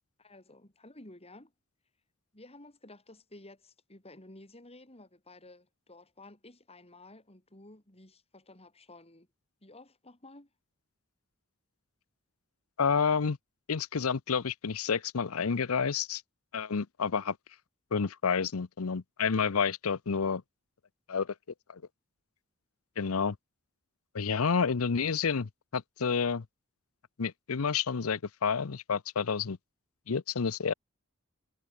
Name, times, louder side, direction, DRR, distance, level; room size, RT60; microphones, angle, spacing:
voice 1, 0.2-1.5 2.3-9.3 9.6-10.5, left 2 dB, 30° left, 4.9 m, -53 dB
voice 2, 12.8-13.4 13.7-16.2 16.5-17.4 17.9-20.4 21.1-21.3 21.7-21.8 23.0-23.4 24.1-26.4 27.2-29.6 30.1-30.7, left 6 dB, 90° left, 0.7 m, -29 dB
head